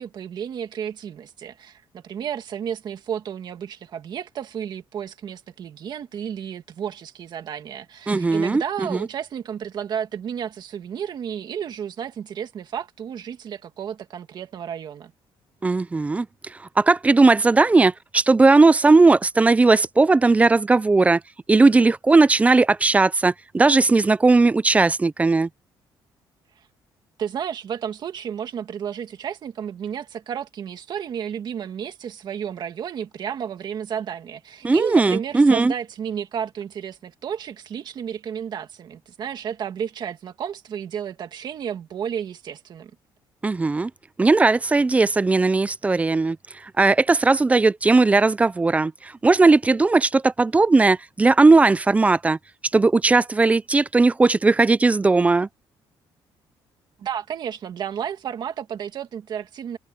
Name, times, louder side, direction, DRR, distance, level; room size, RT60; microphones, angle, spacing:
voice 1, 0.0-15.1 27.2-42.9 57.0-59.8, right 8 dB, 50° right, 2.1 m, -32 dB
voice 2, 8.1-9.1 15.6-21.2 21.5-25.5 34.6-35.7 43.4-43.9 44.2-46.4 46.6-52.4 52.7-55.5, right 3 dB, 15° right, 0.4 m, -17 dB
cardioid pair, 150°, 9 cm